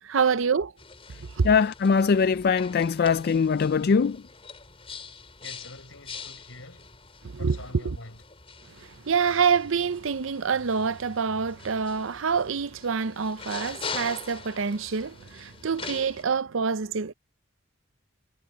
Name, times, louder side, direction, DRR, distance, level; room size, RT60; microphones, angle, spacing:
voice 1, 0.1-0.7 1.4-1.5 7.4-7.6 7.8-8.0 9.1-17.1, right 6 dB, 80° right, 0.6 m, -26 dB
sound 1, 0.8-16.2, left 5 dB, 30° left, 4.0 m, -43 dB
voice 2, 1.4-4.2, left 5 dB, 50° left, 0.4 m, -22 dB
voice 3, 5.4-6.9 7.4-8.2, left 3 dB, 90° left, 5.7 m, -45 dB
head